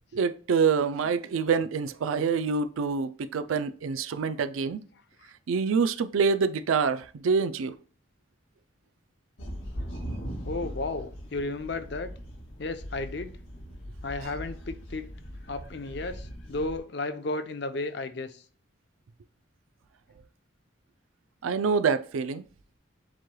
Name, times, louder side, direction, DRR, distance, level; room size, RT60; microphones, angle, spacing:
voice 1, 0.1-4.8 5.5-7.7 21.4-22.4, right 5 dB, 90° right, 0.4 m, -26 dB
sound 1, 9.4-16.8, equal, 85° left, 1.8 m, -40 dB
voice 2, 10.4-12.1 12.6-13.3 14.0-15.1 15.5-18.4, left 2 dB, 55° left, 0.6 m, -33 dB
7.3 x 3.1 x 2.2 m
head